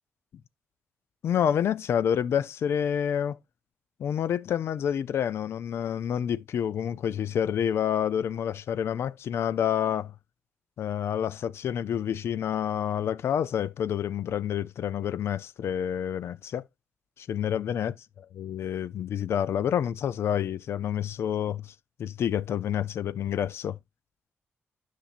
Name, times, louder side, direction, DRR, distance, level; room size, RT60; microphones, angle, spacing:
voice 1, 1.2-3.4 4.0-10.1 10.8-16.6 17.2-17.9 18.4-21.7 22.0-23.8, left 9 dB, 70° left, 0.5 m, -28 dB
10.0 x 6.0 x 2.5 m
wide cardioid pair, 130°, 5 cm